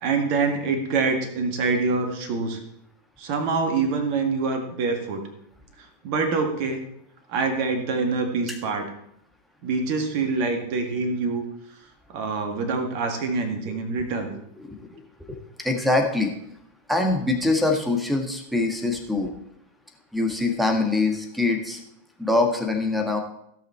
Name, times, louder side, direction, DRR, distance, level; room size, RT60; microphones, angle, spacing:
voice 1, 0.0-2.6 3.2-5.2 6.0-6.8 7.3-8.8 9.6-11.4 12.1-14.3, right 4 dB, 45° right, 5 dB, 2.0 m, -25 dB
voice 2, 14.3-15.0 15.6-16.4 16.9-19.3 20.1-21.8 22.2-23.2, left 2 dB, ahead, 4 dB, 1.8 m, -24 dB
16.5 x 5.8 x 4.5 m, 0.75 s
figure-of-eight pair, 90°, 0 cm